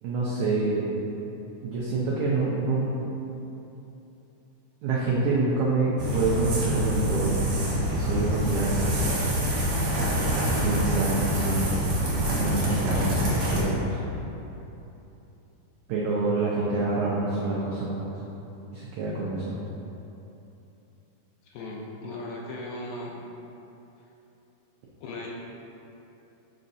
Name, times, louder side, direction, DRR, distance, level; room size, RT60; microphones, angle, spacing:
voice 1, 0.0-0.8 1.6-2.9 4.8-7.5 7.8-9.2 10.6-11.9 12.3-14.0 15.9-18.1 18.7-19.6, right 3 dB, 85° right, -5 dB, 1.6 m, -27 dB
sound 1, 6.0-13.6, equal, 60° right, 2.2 m, -26 dB
voice 2, 21.4-23.2 25.0-25.3, left 2 dB, 80° left, -3 dB, 2.1 m, -37 dB
6.5 x 5.6 x 2.6 m, 3.0 s
omnidirectional pair, 4.2 m